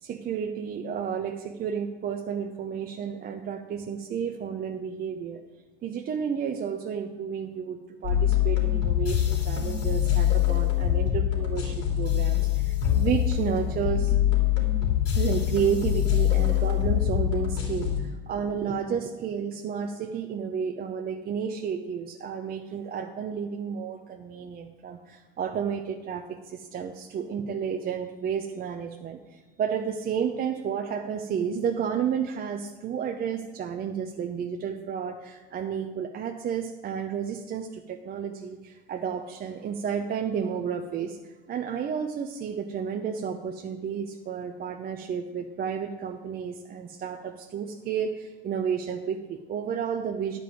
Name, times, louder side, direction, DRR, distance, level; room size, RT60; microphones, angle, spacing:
voice 1, 0.0-5.4 5.8-14.1 15.1-50.4, right 7 dB, 30° right, 4 dB, 0.7 m, -31 dB
sound 1, 8.0-18.0, left 11 dB, 55° left, 3.0 m, -24 dB
10.0 x 5.2 x 7.6 m, 1.2 s
hypercardioid pair, 95°, 29 cm